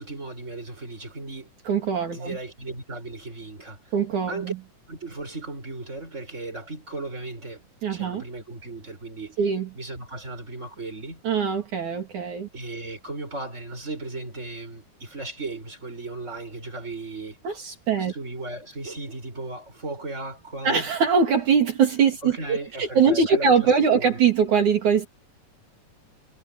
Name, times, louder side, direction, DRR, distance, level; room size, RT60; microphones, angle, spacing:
voice 1, 0.0-1.5 2.1-3.8 4.3-4.5 4.9-7.6 7.9-9.4 9.7-11.2 12.5-17.4 18.0-20.9 22.2-24.2, right 2 dB, 20° right, 7.0 m, -36 dB
voice 2, 1.7-2.4 3.9-4.6 7.8-8.2 9.4-9.7 11.2-12.5 17.4-18.1 20.6-25.1, right 6 dB, 65° right, 4.3 m, -22 dB
omnidirectional pair, 3.7 m